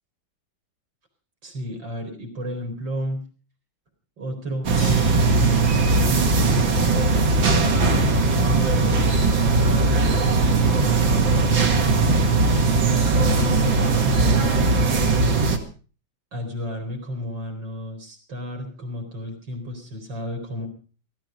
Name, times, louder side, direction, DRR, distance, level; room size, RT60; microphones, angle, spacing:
voice 1, 1.4-3.2 4.2-7.4 7.9-11.8 13.2-14.7 16.3-20.7, left 1 dB, 70° right, 3 dB, 5.0 m, -32 dB
sound 1, 4.6-15.6, right 3 dB, 90° right, 2.7 m, -19 dB
sound 2, 4.8-6.8, left 3 dB, 60° left, 4.3 m, -42 dB
17.0 x 13.5 x 5.2 m, 0.38 s
omnidirectional pair, 2.1 m